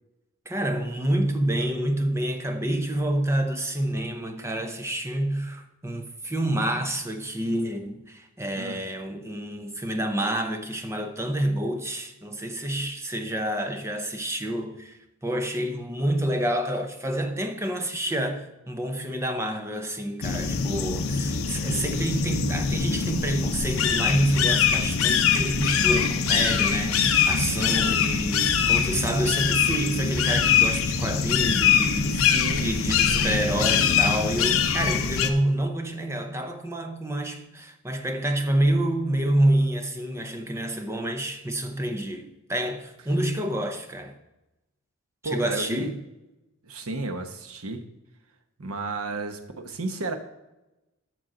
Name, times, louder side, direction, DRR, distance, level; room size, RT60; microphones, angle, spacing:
voice 1, 0.5-44.1 45.2-46.0, right 1 dB, 10° right, 0.7 m, -28 dB
sound 1, 20.2-35.3, left 7 dB, 70° left, 0.7 m, -23 dB
voice 2, 32.1-33.2 45.2-45.9 46.6-47.8 48.6-50.2, right 3 dB, 75° right, 1.0 m, -33 dB
12.0 x 6.4 x 3.8 m
head